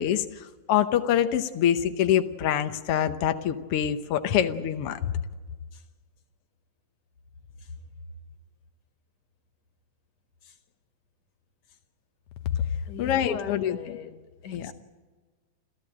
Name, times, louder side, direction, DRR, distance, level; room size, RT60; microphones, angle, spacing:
voice 1, 0.0-5.1 13.0-13.8 14.5-14.7, left 10 dB, 75° left, 7 dB, 1.3 m, -25 dB
voice 2, 12.9-14.2 14.4-14.7, left 7 dB, 55° left, 6 dB, 2.7 m, -39 dB
29.0 x 13.5 x 8.7 m, 1.4 s
omnidirectional pair, 3.9 m